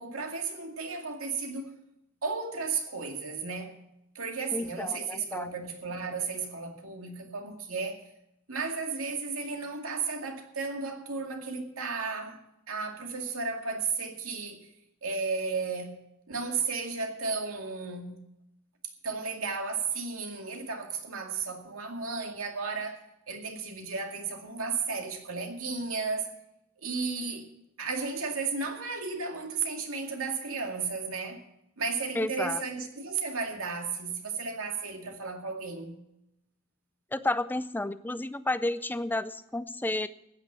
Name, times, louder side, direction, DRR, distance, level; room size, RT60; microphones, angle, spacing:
voice 1, 0.0-1.7 2.2-3.7 4.1-8.0 8.5-12.4 12.7-14.6 15.0-16.0 16.3-18.2 19.0-23.0 23.3-26.3 26.8-27.5 27.8-31.4 31.8-36.0, right 4 dB, 85° right, 2.3 m, -34 dB
voice 2, 4.5-5.5 32.1-32.6 37.1-40.1, left 2 dB, 10° left, 0.5 m, -31 dB
15.0 x 9.7 x 6.1 m
head